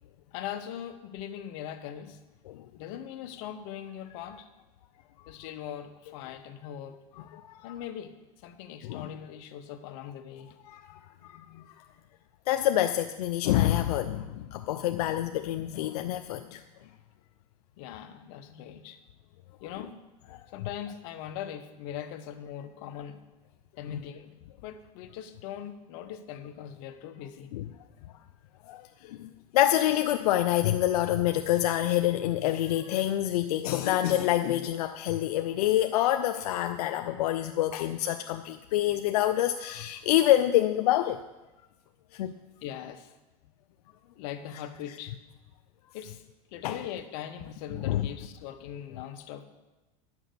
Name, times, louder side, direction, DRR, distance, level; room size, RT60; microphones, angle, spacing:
voice 1, 0.3-2.2 2.8-4.5 5.3-7.0 7.6-8.2 8.4-10.6 17.8-19.0 19.6-20.0 20.5-23.2 23.8-27.5 38.8-39.0 42.6-43.1 44.1-45.2 45.9-46.2 46.5-49.4, left 10 dB, 65° left, 9 dB, 1.0 m, -41 dB
voice 2, 10.7-11.0 11.3-11.6 12.5-16.6 23.9-24.0 27.5-27.6 28.7-41.2 42.1-42.3 46.6-46.8 47.9-48.0, left 13 dB, 85° left, 8 dB, 0.5 m, -27 dB
10.0 x 6.1 x 6.8 m, 1.1 s
supercardioid pair, 115°, 19 cm